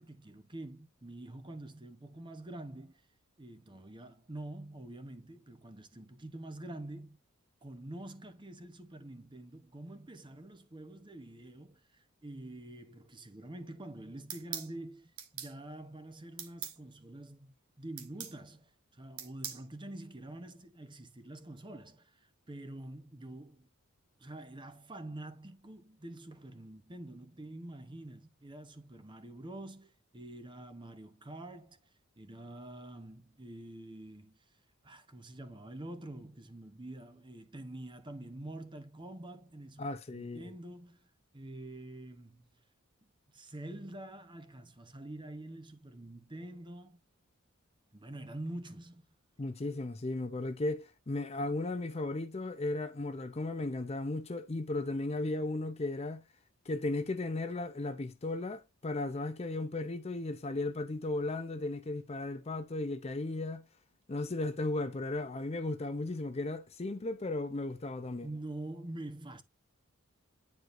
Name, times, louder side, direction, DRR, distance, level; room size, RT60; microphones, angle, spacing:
voice 1, 0.0-3.0 3.4-7.2 7.6-23.7 24.2-34.4 34.8-42.5 43.3-47.0 47.9-49.1 68.2-69.4, right 1 dB, 20° right, 0.9 m, -46 dB
sound 1, 14.3-14.7 15.2-15.5 16.4-16.8 18.0-18.4 19.2-19.6, right 8 dB, 85° right, 1.4 m, -41 dB
voice 2, 39.8-40.5 49.4-56.2 56.7-63.6 64.1-68.3, left 2 dB, 30° left, 0.5 m, -35 dB
9.4 x 4.7 x 2.6 m
head